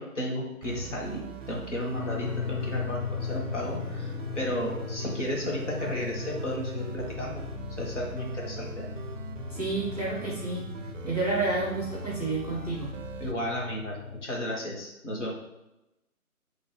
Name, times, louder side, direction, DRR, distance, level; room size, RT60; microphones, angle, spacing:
voice 1, 0.0-7.4 7.8-8.9 13.2-15.3, equal, 50° left, -3 dB, 1.4 m, -33 dB
sound 1, 0.6-13.3, right 5 dB, 60° right, 0.5 m, -41 dB
sound 2, 1.9-14.3, left 7 dB, 65° left, 0.5 m, -37 dB
voice 2, 9.5-10.7 11.0-13.0, right 3 dB, 25° right, -4 dB, 0.8 m, -30 dB
5.3 x 2.9 x 3.1 m, 0.93 s
figure-of-eight pair, 170°, 44 cm